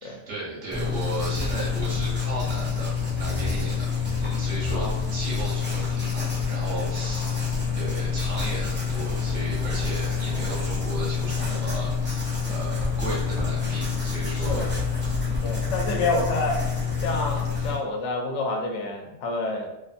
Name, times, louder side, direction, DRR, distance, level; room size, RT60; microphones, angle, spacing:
voice 1, 0.0-7.4 7.7-14.7 15.2-15.4, right 2 dB, 75° right, -6 dB, 1.3 m, -35 dB
Writing, 0.7-17.8, left 5 dB, 15° right, 0.4 m, -27 dB
sound 1, 2.1-15.9, equal, 40° left, 0.5 m, -42 dB
sound 2, 8.0-17.8, equal, 10° left, 0.8 m, -45 dB
voice 2, 14.3-14.7 15.4-16.6 17.0-19.7, left 2 dB, 75° left, 2 dB, 0.9 m, -28 dB
2.6 x 2.6 x 2.4 m, 0.95 s
omnidirectional pair, 1.2 m